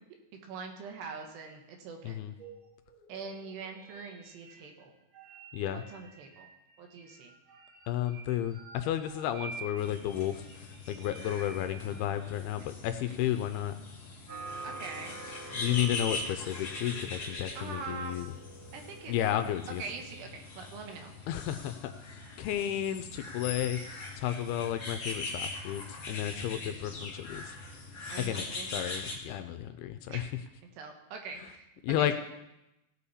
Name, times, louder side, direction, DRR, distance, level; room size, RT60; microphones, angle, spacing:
voice 1, 0.4-2.2 3.1-4.9 5.7-6.5 6.8-7.3 12.6-12.7 14.6-15.1 17.6-18.2 18.7-19.1 19.8-21.1 28.1-28.7 30.1-30.3 30.6-31.7 32.0-32.1, right 5 dB, 75° right, 3 dB, 3.4 m, -43 dB
Samurai Jugular Raw, 2.4-12.6, right 3 dB, 55° right, 3.3 m, -50 dB
voice 2, 7.9-13.7 15.5-18.3 19.1-19.8 21.3-27.6 28.2-28.5 28.7-30.3 31.8-32.1, left 11 dB, 85° left, 8 dB, 2.3 m, -33 dB
sound 1, 9.8-29.2, left 3 dB, 35° left, 2.2 m, -42 dB
sound 2, 14.3-20.2, right 3 dB, 25° right, 3.3 m, -47 dB
17.0 x 8.3 x 4.2 m, 0.92 s
omnidirectional pair, 4.9 m